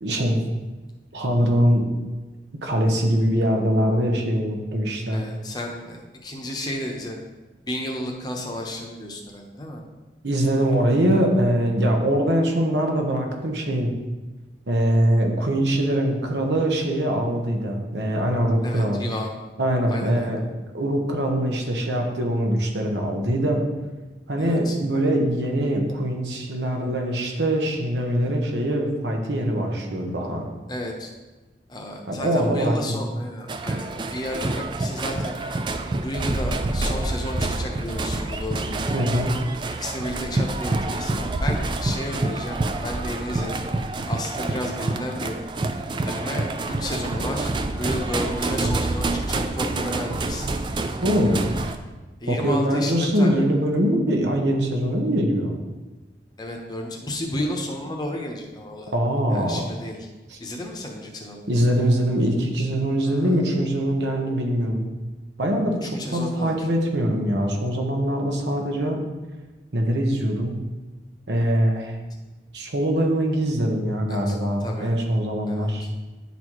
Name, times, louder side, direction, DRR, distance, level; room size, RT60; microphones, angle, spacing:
voice 1, 0.0-0.4 1.1-1.9 2.6-5.2 10.2-13.9 14.7-19.0 19.6-20.4 20.7-23.6 24.3-30.4 32.1-33.0 38.9-39.3 51.0-51.5 52.3-55.6 58.9-59.7 60.3-60.4 61.5-64.9 65.4-69.0 69.7-70.6 71.3-72.0 72.5-75.9, right 1 dB, 85° right, 2 dB, 1.1 m, -23 dB
voice 2, 5.1-7.2 7.7-9.8 18.6-19.3 19.9-20.3 24.4-24.8 30.7-31.1 31.7-35.3 36.0-39.1 39.8-43.6 44.1-45.4 46.1-50.5 51.3-51.5 52.2-53.4 56.4-58.9 59.3-60.1 60.4-61.4 63.0-63.4 65.8-66.6 74.1-75.0 75.5-75.9, left 1 dB, 25° left, 1 dB, 0.8 m, -32 dB
sound 1, 33.5-51.7, right 2 dB, 25° right, 0.3 m, -27 dB
10.0 x 4.1 x 3.1 m, 1.2 s
head